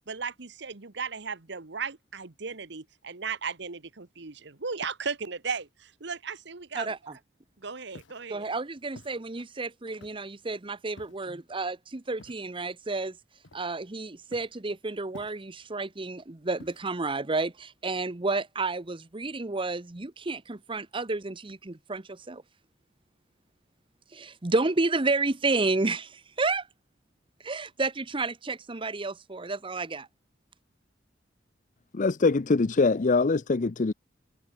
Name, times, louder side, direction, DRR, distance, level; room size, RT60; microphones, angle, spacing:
voice 1, 0.1-6.9 7.6-8.5, right 5 dB, 65° right, 1.3 m, -36 dB
voice 2, 6.7-7.2 8.3-13.2 13.5-22.4 24.1-26.7 27.4-30.1, right 3 dB, 30° right, 0.9 m, -31 dB
Walk footsteps, 7.9-8.3 9.0-9.2 10.0-10.4 11.0-11.3 12.2-12.5 13.4-13.9 14.3-14.6 15.1-15.7 16.6-17.1, left 2 dB, 85° left, 1.8 m, -51 dB
voice 3, 31.9-33.9, left 3 dB, 45° left, 0.5 m, -23 dB
head